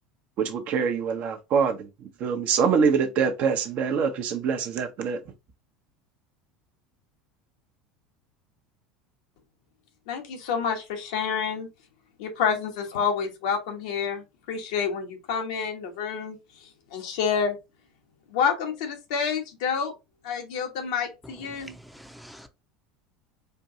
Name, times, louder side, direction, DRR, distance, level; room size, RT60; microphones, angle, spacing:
voice 1, 0.4-1.9 2.2-5.2, right 6 dB, 50° right, 0.7 m, -24 dB
voice 2, 10.1-11.7 12.2-16.4 16.9-17.6 18.3-19.9 20.2-21.7, left 6 dB, 65° left, 1.0 m, -28 dB
voice 3, 21.2-22.5, equal, ahead, 0.6 m, -46 dB
4.4 x 2.6 x 2.6 m
figure-of-eight pair, 75°, 3 cm